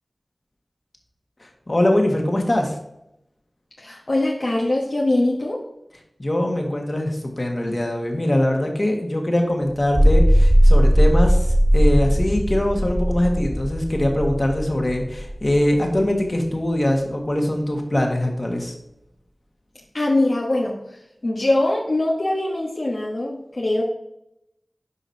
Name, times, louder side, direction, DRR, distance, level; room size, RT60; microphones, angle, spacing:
voice 1, 1.4-2.8 6.2-18.7, left 1 dB, 40° left, 2 dB, 1.6 m, -22 dB
voice 2, 3.8-5.6 19.9-20.7 21.2-23.8, left 1 dB, 65° left, -3 dB, 1.2 m, -22 dB
sound 1, 9.8-16.3, equal, 30° right, 1.6 m, -18 dB
11.0 x 5.0 x 2.8 m, 0.83 s
wide cardioid pair, 45°, 0 cm